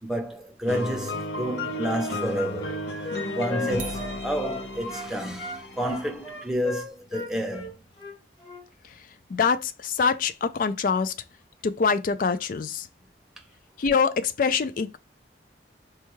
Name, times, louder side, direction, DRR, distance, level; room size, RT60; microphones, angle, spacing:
voice 1, 0.0-2.8 3.2-7.7, equal, 5° right, 0.6 m, -30 dB
sound 1, 0.7-6.5, left 1 dB, 70° left, 0.7 m, -34 dB
Wind instrument woodwind instrument, 1.7-5.1 5.4-8.6, left 2 dB, 25° left, 0.9 m, -37 dB
sound 2, 3.8-5.4, right 9 dB, 50° right, 0.5 m, -44 dB
voice 2, 9.3-11.1 11.6-12.9 13.8-15.0, left 5 dB, 50° left, 0.3 m, -24 dB
4.5 x 2.2 x 3.0 m
head